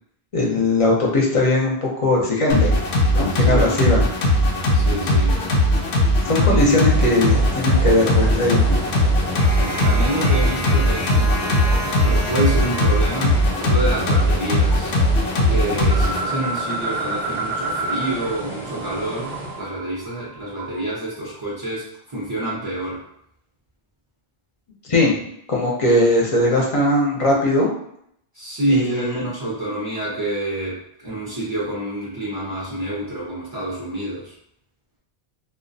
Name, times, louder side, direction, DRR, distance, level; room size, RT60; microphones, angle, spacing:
voice 1, 0.3-2.8 3.1-4.0 6.2-8.8 24.9-25.2 25.5-27.7 28.7-29.2, left 2 dB, 45° left, -2 dB, 0.5 m, -19 dB
sound 1, 2.5-16.2, left 1 dB, 85° left, 0.8 m, -19 dB
voice 2, 3.3-3.8 4.7-5.4 6.4-6.8 9.5-11.6 12.0-14.9 15.5-23.0 28.3-34.3, right 1 dB, 40° right, -7 dB, 0.3 m, -27 dB
sound 2, 6.7-19.7, right 1 dB, ahead, 0.7 m, -34 dB
sound 3, 15.8-18.4 18.6-20.9, right 2 dB, 65° right, 0.7 m, -29 dB
2.3 x 2.1 x 2.6 m, 0.73 s
omnidirectional pair, 1.1 m